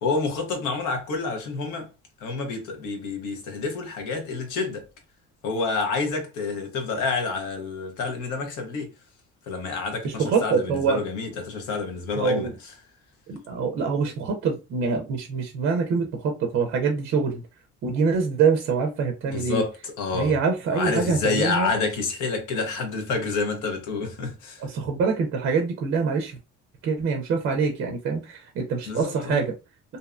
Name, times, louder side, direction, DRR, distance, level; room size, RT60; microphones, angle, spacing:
voice 1, 0.0-1.9 2.2-4.8 5.4-8.9 9.5-12.5 19.3-20.3 20.7-24.6 28.9-29.4, left 4 dB, 85° left, 0.9 m, -28 dB
voice 2, 10.0-11.0 12.1-12.5 13.3-17.4 17.8-19.6 20.1-21.8 24.6-26.4 26.8-29.5, right 5 dB, 45° right, 0.5 m, -25 dB
2.6 x 2.1 x 2.4 m
cardioid pair, 170°, 29 cm